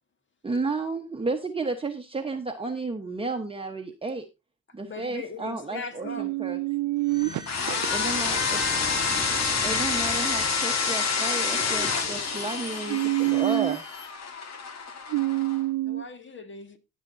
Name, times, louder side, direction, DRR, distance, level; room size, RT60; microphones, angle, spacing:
voice 1, 0.4-4.2 4.7-6.6 7.9-8.6 9.6-13.8, right 3 dB, 20° right, 1.1 m, -32 dB
voice 2, 4.8-6.3 7.7-9.0 15.8-16.8, left 4 dB, 40° left, 2.0 m, -40 dB
voice 3, 6.1-7.4 12.9-13.8 15.1-16.0, right 20 dB, 80° right, 0.5 m, -26 dB
sound 1, 7.0-12.7, left 1 dB, 20° left, 3.9 m, -38 dB
sound 2, 7.5-15.6, left 5 dB, 60° left, 1.8 m, -28 dB
sound 3, 11.4-14.1, right 1 dB, 80° left, 2.0 m, -49 dB
17.5 x 7.5 x 2.7 m
cardioid pair, 90°, 30 cm